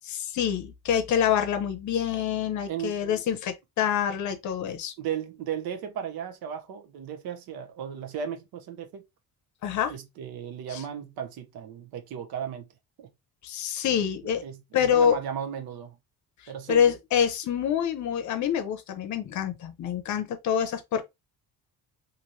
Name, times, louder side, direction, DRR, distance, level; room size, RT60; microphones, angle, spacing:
voice 1, 0.1-4.9 9.6-9.9 10.7-10.8 13.4-14.4 14.7-15.2 16.7-21.0, left 8 dB, 50° left, 0.6 m, -26 dB
voice 2, 2.7-3.0 5.0-9.0 9.9-12.7 13.0-13.1 13.9-14.0 14.4-16.0 16.5-16.9, right 8 dB, 75° right, 0.7 m, -35 dB
3.0 x 2.6 x 2.6 m
cardioid pair, 145°, 37 cm